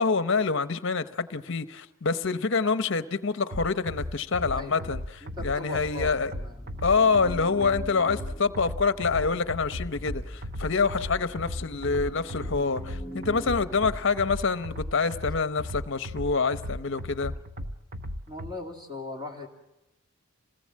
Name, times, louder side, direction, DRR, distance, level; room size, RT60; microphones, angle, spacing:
voice 1, 0.0-6.3 6.8-17.3, left 4 dB, 55° left, 0.8 m, -26 dB
sound 1, 3.5-18.5, left 1 dB, 40° right, 0.9 m, -37 dB
voice 2, 4.5-6.6 13.4-13.6 18.3-19.5, left 2 dB, 20° right, 2.6 m, -39 dB
sound 2, 5.9-14.9, equal, 15° left, 1.1 m, -44 dB
26.5 x 18.5 x 7.5 m
head